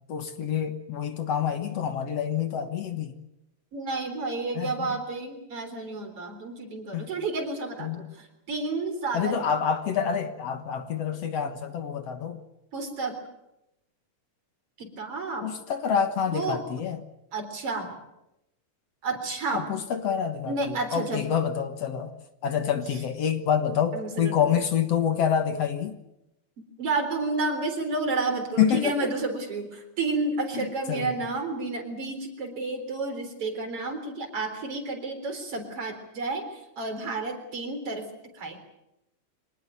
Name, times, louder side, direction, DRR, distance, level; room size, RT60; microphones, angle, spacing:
voice 1, 0.1-3.2 4.5-4.9 6.9-7.2 7.8-8.0 9.1-12.4 15.4-17.0 19.5-22.1 22.4-26.0 28.6-28.9 30.5-31.1, left 8 dB, 60° left, 9 dB, 2.3 m, -27 dB
voice 2, 3.7-9.4 12.7-13.2 14.8-15.5 16.3-16.6 17.3-18.0 19.0-19.7 20.5-21.2 23.9-24.3 26.8-38.6, right 3 dB, 50° right, 5 dB, 4.8 m, -31 dB
25.0 x 19.5 x 9.2 m, 0.89 s
omnidirectional pair, 3.3 m